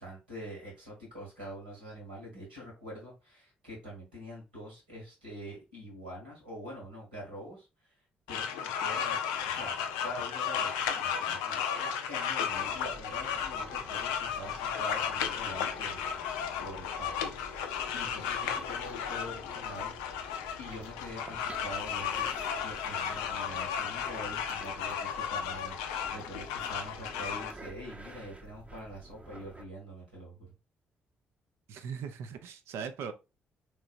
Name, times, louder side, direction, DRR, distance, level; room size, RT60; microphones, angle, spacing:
voice 1, 0.0-7.9 8.3-17.3 17.9-19.9 20.6-22.3 22.6-30.5, equal, 90° right, 1.7 m, -45 dB
sound 1, 8.3-27.5, left 8 dB, 70° left, 0.4 m, -34 dB
sound 2, 12.5-29.7, right 2 dB, 25° right, 0.7 m, -50 dB
voice 2, 31.7-33.1, right 6 dB, 60° right, 0.4 m, -39 dB
3.7 x 3.1 x 2.5 m
figure-of-eight pair, 40°, 5 cm